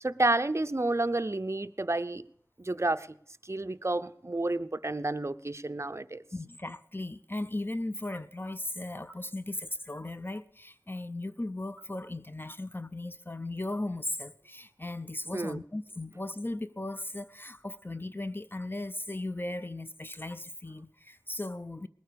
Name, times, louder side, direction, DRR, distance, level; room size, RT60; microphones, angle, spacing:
voice 1, 0.0-2.2 2.6-3.1 3.4-6.2 15.3-15.6, right 2 dB, 45° right, 0.6 m, -30 dB
voice 2, 6.3-21.9, left 2 dB, 30° left, 0.5 m, -37 dB
20.0 x 9.2 x 5.2 m
wide cardioid pair, 45°, 7 cm